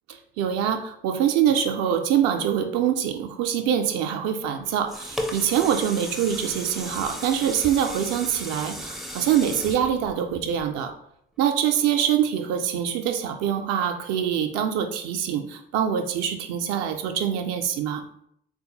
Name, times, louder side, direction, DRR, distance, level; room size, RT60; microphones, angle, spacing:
voice 1, 0.1-10.9 11.4-18.0, right 9 dB, 55° right, 5 dB, 0.5 m, -24 dB
sound 1, 4.6-10.9 11.4-11.5, equal, ahead, 0.4 m, -35 dB
3.5 x 2.2 x 2.8 m, 0.70 s
figure-of-eight pair, 45°, 30 cm